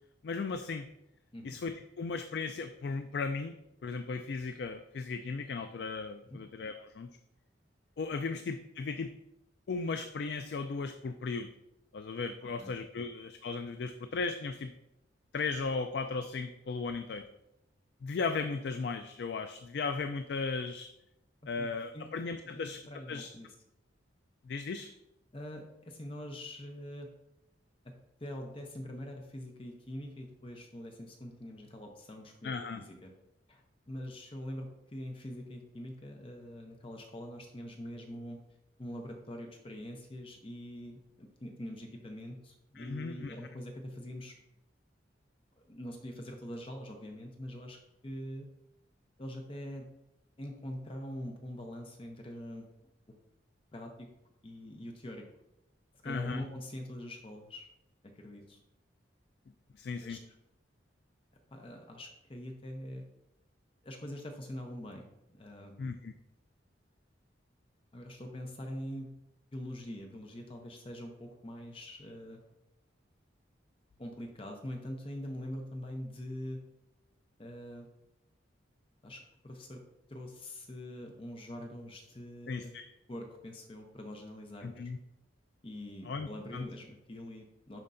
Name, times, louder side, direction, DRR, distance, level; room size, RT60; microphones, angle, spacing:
voice 1, 0.2-0.9 1.4-3.5 3.8-7.1 8.0-9.1 9.7-11.5 11.9-14.7 15.3-17.2 18.0-20.9 21.5-22.8 23.1-23.3 24.4-24.9 32.4-32.8 42.8-43.3 56.0-56.5 59.7-60.2 65.8-66.1 82.5-82.9 84.6-85.0 86.0-86.7, left 4 dB, 60° left, 8 dB, 0.3 m, -36 dB
voice 2, 22.5-23.5 25.3-27.1 27.8-27.9 28.2-33.1 33.5-33.6 33.9-38.4 38.8-44.4 45.7-47.8 48.0-48.5 49.2-49.9 50.4-52.7 53.1-53.2 53.7-54.1 54.4-55.3 56.0-57.7 58.0-58.6 60.0-60.2 61.5-63.0 63.8-65.7 67.9-69.1 69.5-72.4 74.0-76.6 77.4-77.9 79.0-79.8 80.1-82.7 83.1-84.9 85.6-87.8, equal, 30° left, 2 dB, 0.6 m, -44 dB
11.0 x 4.4 x 2.6 m, 0.88 s
head